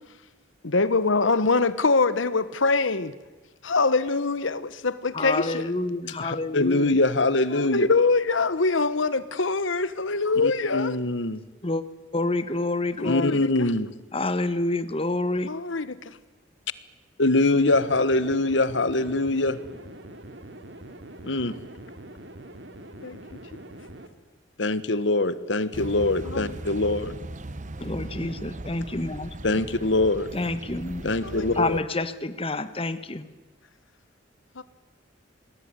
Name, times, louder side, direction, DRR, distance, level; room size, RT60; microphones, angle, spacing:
voice 1, 0.6-3.1 3.6-5.7 7.5-10.9 13.0-13.5 15.4-15.9 21.5-21.6 23.0-23.4 26.2-26.6 31.2-31.6 34.6-34.7, left 3 dB, 90° left, 1.2 m, -24 dB
voice 2, 5.1-6.9 11.6-11.8 12.1-13.4 14.1-15.5 27.8-29.3 30.3-31.0 31.5-33.3, left 2 dB, 30° left, 1.3 m, -28 dB
voice 3, 6.2-7.9 10.4-11.4 13.0-13.9 17.2-19.6 21.2-21.5 24.6-27.1 29.4-30.3 31.0-31.8, left 2 dB, 70° left, 1.4 m, -23 dB
sound 1, 17.7-24.1, right 1 dB, 65° right, 2.7 m, -44 dB
sound 2, 25.7-31.8, right 1 dB, 40° right, 1.0 m, -38 dB
27.0 x 20.5 x 9.7 m
head